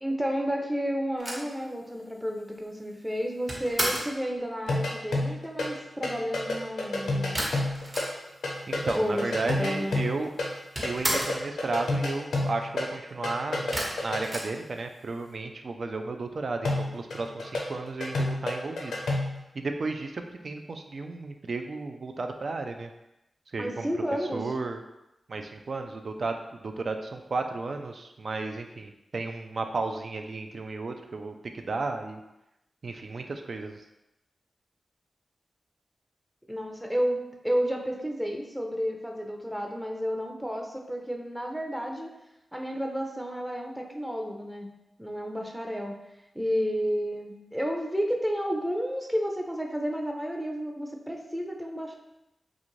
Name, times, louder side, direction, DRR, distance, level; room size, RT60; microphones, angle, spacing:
voice 1, 0.0-7.4 8.9-9.2 9.5-10.0 23.6-24.5 36.5-42.1 42.5-44.7 45.0-45.9 46.3-52.0, equal, 5° right, 1 dB, 0.5 m, -31 dB
sound 1, 1.2-4.2 7.3-8.5 8.8-8.9 9.1-9.9 10.1-11.5 13.7-15.2, equal, 30° right, 1.0 m, -33 dB
sound 2, 4.7-5.8 6.0-10.6 10.8-14.2 16.6-19.4, left 2 dB, 90° left, 0.5 m, -30 dB
voice 2, 8.7-10.3 10.8-18.9 19.5-22.9 23.5-23.9 24.3-24.8 25.3-26.4 26.6-32.2 32.8-33.8, right 3 dB, 65° right, 5 dB, 0.3 m, -33 dB
2.5 x 2.4 x 3.0 m, 0.90 s
cardioid pair, 45°, 0 cm